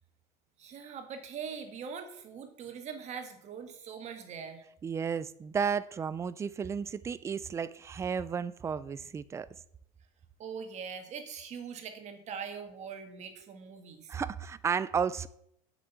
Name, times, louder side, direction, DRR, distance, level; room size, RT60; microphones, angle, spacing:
voice 1, 0.6-4.6 10.4-14.1, right 6 dB, 35° right, 1.7 m, -42 dB
voice 2, 4.8-9.5 14.1-15.3, right 6 dB, 15° right, 0.3 m, -33 dB
7.8 x 6.2 x 7.0 m
supercardioid pair, 140°, 20 cm